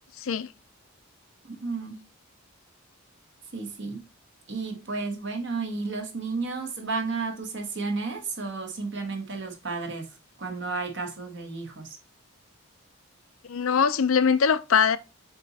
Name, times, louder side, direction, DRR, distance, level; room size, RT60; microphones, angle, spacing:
voice 1, 0.2-0.5 13.5-15.0, left 6 dB, 70° left, 0.5 m, -22 dB
voice 2, 1.4-2.0 3.5-4.0 4.5-10.1 10.4-11.9, right 4 dB, 55° right, 1.2 m, -32 dB
7.7 x 3.0 x 4.1 m
head